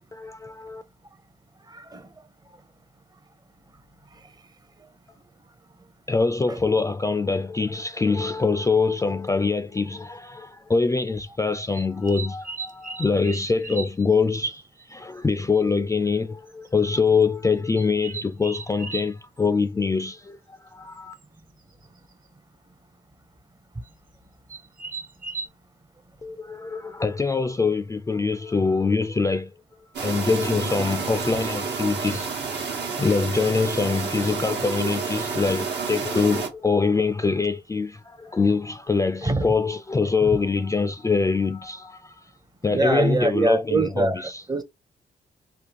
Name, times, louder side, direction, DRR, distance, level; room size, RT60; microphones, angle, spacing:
voice 1, 0.1-0.8 6.1-21.1 26.2-29.5 30.0-32.3 33.0-42.1 42.6-44.1, left 4 dB, 15° left, 0.3 m, -24 dB
voice 2, 1.7-2.1 6.5-6.6 39.2-39.6 40.2-40.4 42.7-44.6, right 2 dB, 20° right, 0.6 m, -24 dB
sound 1, 9.3-9.4 10.1-10.3 11.7-14.1 14.4-14.5 14.8-14.9 15.2-15.3 15.5-15.6 16.5-16.7 17.7-19.1 21.2-21.3 21.6-22.0 23.8-23.9 24.5-25.5, right 4 dB, 50° right, 0.9 m, -37 dB
sound 2, 29.9-36.5, right 5 dB, 80° right, 1.1 m, -29 dB
3.5 x 2.3 x 2.8 m
cardioid pair, 65°, 18 cm